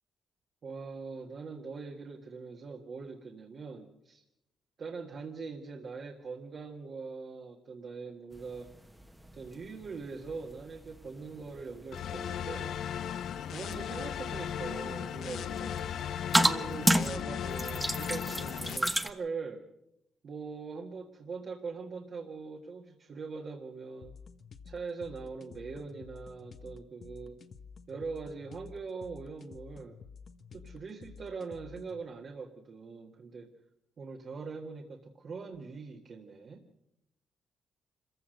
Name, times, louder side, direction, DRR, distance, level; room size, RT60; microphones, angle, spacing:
voice 1, 0.6-4.2 4.8-8.7 9.3-12.8 13.5-15.8 16.3-19.6 20.2-24.1 24.6-27.4 27.9-30.0 30.5-33.5 34.0-36.6, right 4 dB, 55° right, 1 dB, 1.7 m, -42 dB
sound 1, 8.3-19.1, right 1 dB, 5° right, 1.2 m, -34 dB
sound 2, 11.9-18.8, left 9 dB, 70° left, 0.8 m, -36 dB
sound 3, 24.0-32.0, left 5 dB, 55° left, 1.3 m, -51 dB
26.0 x 15.5 x 6.6 m, 0.86 s
cardioid pair, 85°, 0 cm